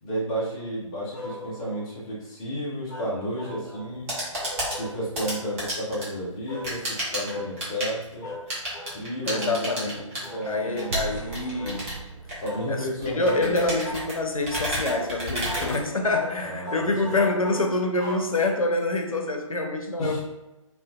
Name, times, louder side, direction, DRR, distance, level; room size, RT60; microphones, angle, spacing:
voice 1, 0.0-4.1 4.7-6.8 7.1-8.3 8.9-10.9 12.4-13.6 16.4-17.2 20.0-20.2, equal, 10° left, -7 dB, 0.3 m, -32 dB
sound 1, 1.1-1.9 2.9-3.9 4.4-5.4 6.5-6.7 7.2-7.5 8.2-8.5 8.7-9.0 9.3-9.6 10.2-10.5 10.7-11.0 11.6-11.8 12.5-12.7 13.2-13.5 13.8-14.1 14.5-15.1 15.5-15.7 16.1-16.3 16.6-18.8, left 1 dB, 35° left, 0.7 m, -39 dB
sound 2, 3.8-16.4, right 1 dB, 25° right, 0.7 m, -33 dB
voice 2, 9.3-9.9 10.5-11.9 12.7-20.2, left 2 dB, 90° left, 3 dB, 0.4 m, -26 dB
sound 3, 10.9-13.9, right 4 dB, 65° right, 0.5 m, -38 dB
2.4 x 2.3 x 2.2 m, 1.1 s
figure-of-eight pair, 140°, 17 cm